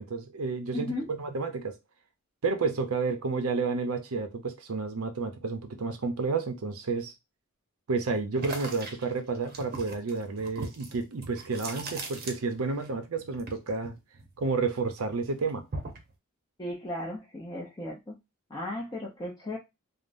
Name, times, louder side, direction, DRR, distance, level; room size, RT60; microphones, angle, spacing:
voice 1, 0.0-1.8 2.4-7.1 7.9-13.9 14.4-15.7, right 4 dB, 85° right, 0.6 m, -31 dB
voice 2, 0.7-1.1 16.6-18.2 18.5-19.6, left 1 dB, 20° left, 0.5 m, -35 dB
sound 1, 8.3-12.9 13.1-14.8 15.1-16.1, right 3 dB, 45° right, 0.7 m, -40 dB
3.5 x 2.0 x 2.5 m
head